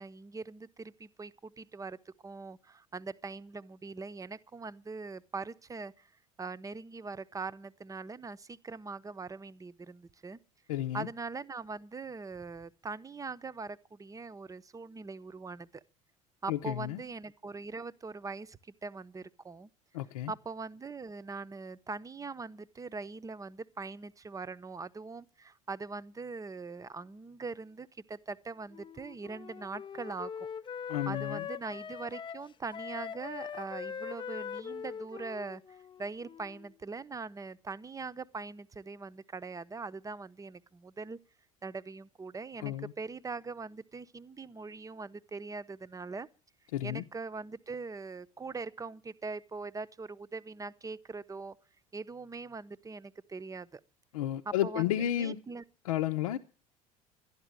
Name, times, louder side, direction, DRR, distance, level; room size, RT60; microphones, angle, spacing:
voice 1, 0.0-6.1 6.4-10.4 10.9-15.8 16.4-19.7 20.3-30.3 31.1-35.6 36.0-41.2 41.6-46.3 46.8-51.6 51.9-53.8 54.5-55.6, right 4 dB, 20° right, 0.8 m, -42 dB
voice 2, 10.7-11.1 16.5-17.0 19.9-20.3 30.9-31.5 42.6-42.9 46.7-47.0 54.1-55.4 55.8-56.4, left 12 dB, 80° left, 0.8 m, -32 dB
Wind instrument woodwind instrument, 28.7-36.7, left 7 dB, 25° left, 0.6 m, -42 dB
12.5 x 11.0 x 9.0 m
hypercardioid pair, 70°, 18 cm